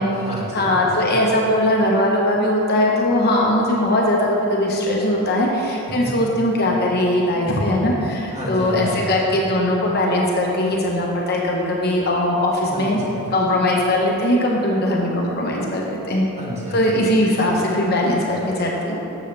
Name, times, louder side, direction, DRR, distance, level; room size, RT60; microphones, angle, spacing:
voice 1, 0.0-1.1 6.0-6.2 8.3-9.2 12.7-13.3 16.4-16.8, equal, 30° right, -6 dB, 1.9 m, -30 dB
voice 2, 0.5-13.0 13.3-16.3 16.7-19.0, left 1 dB, 45° left, -2 dB, 1.0 m, -20 dB
12.0 x 7.0 x 3.4 m, 2.8 s
head